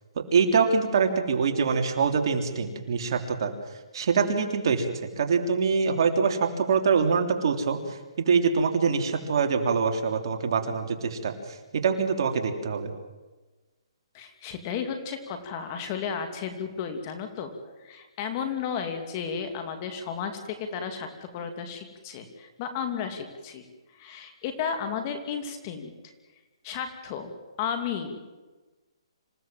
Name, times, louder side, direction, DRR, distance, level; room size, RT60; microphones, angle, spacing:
voice 1, 0.3-3.5 3.9-12.9, right 5 dB, 55° right, 4 dB, 3.1 m, -24 dB
voice 2, 14.1-17.5 17.8-23.6 24.0-25.9 26.6-27.3 27.6-28.4, left 7 dB, 30° left, 6 dB, 2.7 m, -33 dB
26.5 x 16.5 x 7.6 m, 1.2 s
hypercardioid pair, 155°, 3 cm